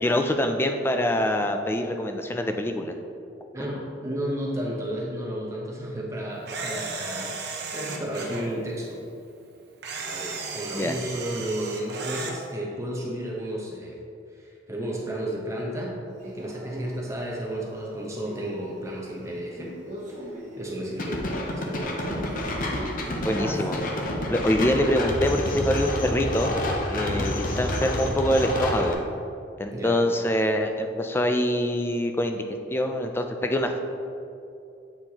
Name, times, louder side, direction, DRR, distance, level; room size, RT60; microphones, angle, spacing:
voice 1, 0.0-2.9 10.7-11.0 23.2-23.8 24.3-26.6 26.9-29.0 29.6-32.4 32.7-33.8, left 1 dB, 10° left, 5 dB, 0.3 m, -25 dB
voice 2, 3.5-9.0 10.0-14.0 14.3-15.9 16.2-19.7 20.2-22.1 26.9-27.4 29.7-30.0, right 1 dB, 15° right, -2 dB, 0.8 m, -33 dB
Camera, 6.5-8.4 9.8-12.4, right 4 dB, 60° right, 0.7 m, -35 dB
Male speech man speaking, 16.2-24.7, right 1 dB, 40° right, 1.1 m, -41 dB
sound 1, 21.0-28.9, left 1 dB, 45° left, 0.6 m, -29 dB
7.8 x 4.4 x 2.8 m, 2.6 s
head